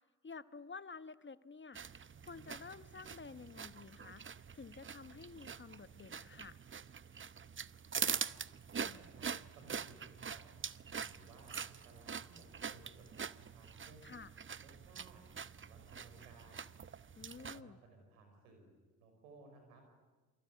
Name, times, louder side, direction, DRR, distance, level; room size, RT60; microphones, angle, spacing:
voice 1, 0.2-1.8 2.2-4.2 4.5-6.6 14.0-14.3 17.2-17.8, left 4 dB, 30° left, 15 dB, 1.1 m, -51 dB
sound 1, 1.7-17.6, right 6 dB, 30° right, 0.8 m, -44 dB
voice 2, 8.7-10.6 11.0-14.1 14.6-15.2 15.6-16.7 17.3-19.8, right 3 dB, 90° right, 4 dB, 5.3 m, -60 dB
28.0 x 23.0 x 9.2 m, 1.3 s
hypercardioid pair, 40°, 40 cm